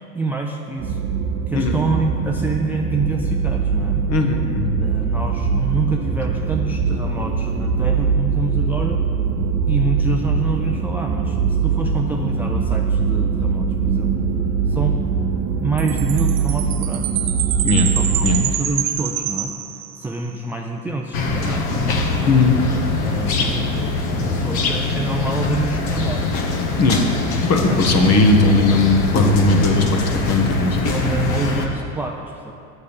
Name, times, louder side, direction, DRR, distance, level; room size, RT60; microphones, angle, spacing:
voice 1, 0.1-1.0 1.5-4.0 4.8-9.0 9.7-14.1 14.7-15.0 15.6-17.1 17.9-19.5 20.0-21.7 22.2-22.3 23.0-26.4 27.7-27.8 30.9-32.5, right 3 dB, 5° right, 0 dB, 0.4 m, -26 dB
sound 1, 0.8-18.4, right 5 dB, 35° right, 0.9 m, -22 dB
voice 2, 4.1-4.8 17.6-17.9 18.2-18.4 22.3-22.6 26.8-27.0 27.5-30.8, left 2 dB, 35° left, 3 dB, 1.4 m, -17 dB
Chime, 15.8-20.3, right 11 dB, 60° right, 1.0 m, -26 dB
sound 2, 21.1-31.7, left 3 dB, 55° left, 1.4 m, -22 dB
8.2 x 6.5 x 7.1 m, 2.6 s
hypercardioid pair, 95°, 45 cm